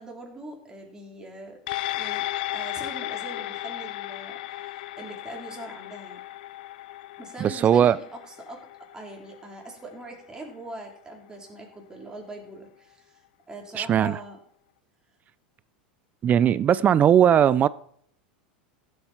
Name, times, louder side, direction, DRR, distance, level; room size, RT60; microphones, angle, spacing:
voice 1, 0.0-1.6 1.9-6.2 7.2-13.2 13.5-14.4, right 2 dB, 15° right, -1 dB, 4.1 m, -42 dB
sound 1, 1.7-10.3 10.7-10.8, left 15 dB, 70° left, 0.5 m, -35 dB
voice 2, 7.4-8.0 13.7-14.2 16.2-17.7, right 9 dB, 35° right, 19 dB, 0.5 m, -19 dB
15.5 x 8.1 x 4.4 m, 0.65 s
hypercardioid pair, 95°, 5 cm